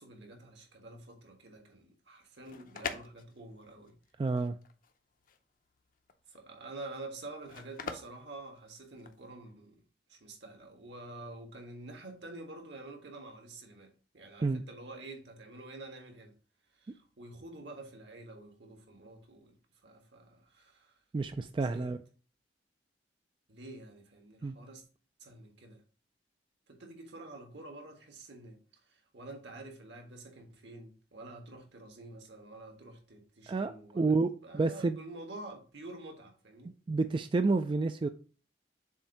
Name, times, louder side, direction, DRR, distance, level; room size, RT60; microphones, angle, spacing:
voice 1, 0.0-3.9 6.3-9.8 10.1-16.3 16.7-19.6 19.8-20.9 21.6-21.9 23.5-24.8 25.2-25.8 26.7-28.6 28.9-34.2 34.4-36.7, right 2 dB, 70° right, 1.6 m, -48 dB
sound 1, 2.2-9.3, left 5 dB, 50° left, 0.7 m, -45 dB
voice 2, 4.2-4.6 14.4-14.6 21.1-22.0 24.4-24.6 33.5-35.0 36.9-38.1, right 3 dB, 30° right, 0.3 m, -29 dB
7.2 x 2.7 x 5.7 m
head